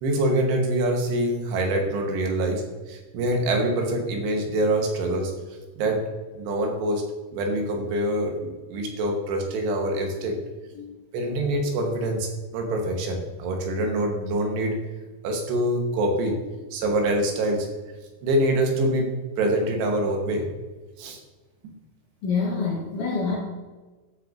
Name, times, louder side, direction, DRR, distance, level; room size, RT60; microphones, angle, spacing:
voice 1, 0.0-5.3 5.8-6.0 6.3-7.0 7.3-10.4 11.1-14.8 15.2-16.4 16.7-17.7 18.2-19.1 19.4-20.5 21.0-21.2 21.6-21.7, right 1 dB, 90° right, 2 dB, 3.3 m, -25 dB
voice 2, 10.7-11.1 22.2-23.4, left 4 dB, 60° left, -4 dB, 2.4 m, -27 dB
13.0 x 6.0 x 2.6 m, 1.2 s
omnidirectional pair, 4.8 m